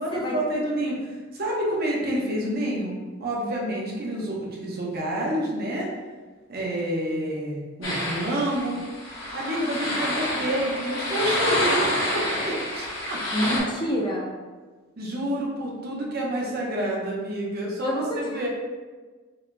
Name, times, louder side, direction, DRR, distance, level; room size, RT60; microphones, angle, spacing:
voice 1, 0.0-5.9 6.5-8.8 9.3-13.2 15.0-18.5, right 1 dB, 50° right, -3 dB, 0.8 m, -28 dB
sound 1, 7.8-13.6, left 1 dB, 70° left, 1.2 m, -28 dB
voice 2, 13.3-14.3 17.8-18.5, equal, 25° left, -3 dB, 0.6 m, -27 dB
4.8 x 2.7 x 2.2 m, 1.3 s
head